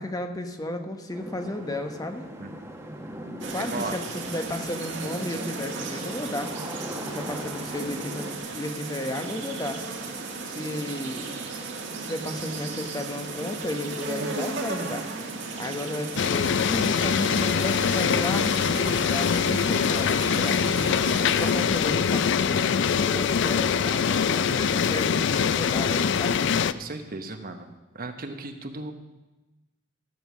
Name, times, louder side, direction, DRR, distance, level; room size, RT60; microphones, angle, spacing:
voice 1, 0.0-2.2 3.5-6.7 7.0-9.8 10.4-11.5 12.0-15.1 15.6-21.1 21.4-26.4, left 1 dB, 20° left, 6 dB, 1.1 m, -33 dB
sound 1, 1.1-8.4, equal, 15° right, 1.4 m, -39 dB
sound 2, 3.4-21.5, right 3 dB, 65° right, 1.8 m, -35 dB
voice 2, 3.6-4.0 7.3-7.4 15.5-15.7 26.7-27.7 27.9-28.9, right 3 dB, 50° right, 6 dB, 1.1 m, -36 dB
sound 3, 16.2-26.7, left 7 dB, 65° left, 0.4 m, -23 dB
14.5 x 7.8 x 6.2 m, 1.1 s
head